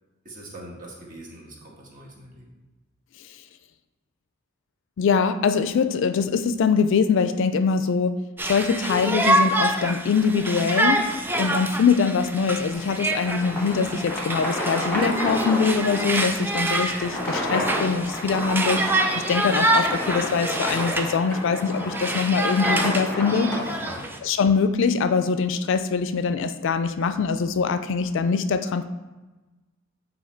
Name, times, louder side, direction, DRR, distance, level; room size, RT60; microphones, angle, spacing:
voice 1, 0.2-2.5 23.8-24.1, right 1 dB, 45° right, -3 dB, 1.4 m, -43 dB
voice 2, 5.0-8.2 8.5-11.1 11.4-23.5 24.2-28.8, left 5 dB, 65° left, 11 dB, 0.4 m, -23 dB
Conversation, 8.4-21.2 21.5-24.2, right 1 dB, 10° right, 0.4 m, -26 dB
sound 1, 12.7-24.0, left 1 dB, 10° left, 1.3 m, -31 dB
8.0 x 2.8 x 4.3 m, 1.2 s
head